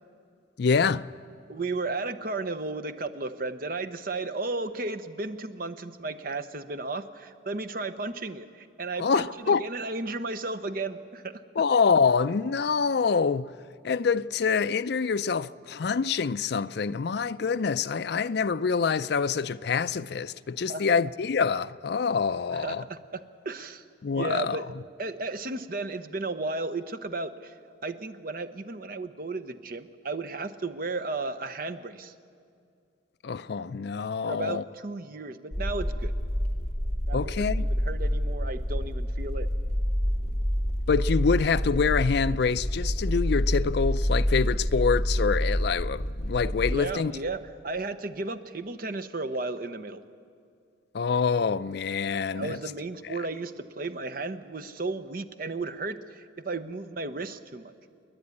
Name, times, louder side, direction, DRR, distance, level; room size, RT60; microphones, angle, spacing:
voice 1, 0.6-1.1 9.0-9.6 11.6-13.5 13.8-22.8 24.0-24.6 33.2-34.6 37.1-37.6 40.9-47.1 50.9-52.6 53.1-53.2, left 5 dB, 60° left, 0.4 m, -26 dB
voice 2, 1.5-11.4 20.7-20.8 22.5-23.8 24.1-24.6 25.0-27.5 27.8-32.1 34.2-36.1 37.1-39.5 46.7-50.0 52.3-57.7, right 3 dB, 50° right, 0.8 m, -34 dB
sound 1, 35.5-46.7, equal, 35° left, 2.8 m, -28 dB
28.5 x 10.5 x 9.7 m
head